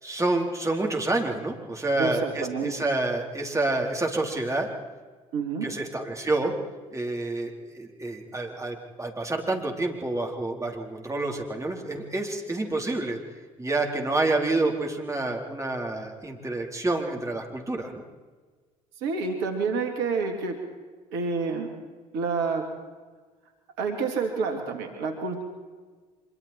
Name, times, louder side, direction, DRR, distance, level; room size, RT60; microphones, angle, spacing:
voice 1, 0.0-4.7 5.6-6.5 6.9-13.2 13.6-18.0, right 2 dB, 15° right, 1 dB, 4.2 m, -28 dB
voice 2, 2.0-2.7 5.3-5.7 19.0-20.6 21.1-21.7 22.1-22.7 23.8-25.4, right 4 dB, 70° right, 4 dB, 2.7 m, -28 dB
25.5 x 24.0 x 4.6 m, 1.4 s
hypercardioid pair, 55°, 18 cm